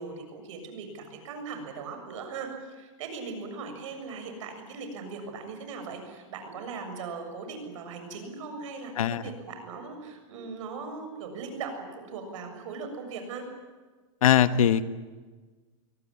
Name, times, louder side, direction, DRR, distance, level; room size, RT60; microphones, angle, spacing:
voice 1, 0.0-13.4, right 4 dB, 65° right, 6 dB, 7.0 m, -39 dB
voice 2, 14.2-14.8, left 9 dB, 85° left, 12 dB, 1.4 m, -21 dB
23.5 x 18.0 x 9.9 m, 1.3 s
supercardioid pair, 145°, 17 cm